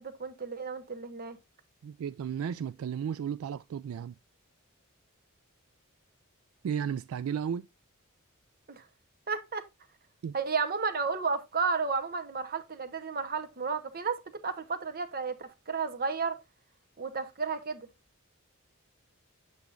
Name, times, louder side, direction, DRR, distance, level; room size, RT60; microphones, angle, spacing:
voice 1, 0.0-1.4 8.7-8.8 9.3-9.7 10.3-16.4 17.0-17.9, right 5 dB, 45° right, 0.9 m, -32 dB
voice 2, 1.8-4.1 6.6-7.7 10.2-10.3, right 8 dB, 70° right, 0.3 m, -34 dB
8.0 x 7.0 x 2.5 m
head